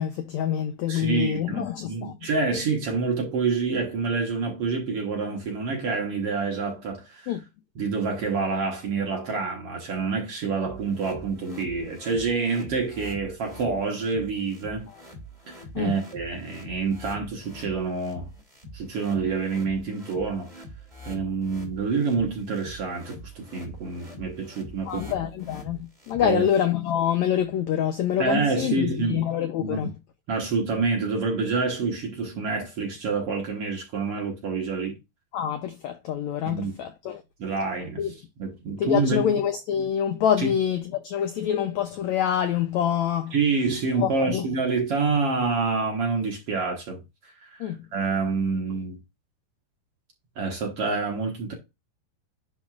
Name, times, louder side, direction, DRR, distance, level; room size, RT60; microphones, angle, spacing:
voice 1, 0.0-2.2 7.3-7.4 15.7-15.9 24.9-29.9 35.3-37.2 38.0-38.2 38.8-43.3 44.0-44.5 47.6-47.8, left 9 dB, 90° left, 1.6 m, -26 dB
voice 2, 0.9-7.3 7.8-14.9 15.5-18.3 18.7-20.5 21.1-25.0 26.2-26.4 28.2-29.2 29.6-29.9 30.3-35.0 36.5-36.8 37.4-38.0 38.4-39.4 40.4-40.5 43.3-49.0 50.4-51.5, right 4 dB, 55° right, 1.8 m, -27 dB
sound 1, 10.6-26.6, equal, 15° right, 1.5 m, -44 dB
11.0 x 4.0 x 2.4 m
omnidirectional pair, 4.1 m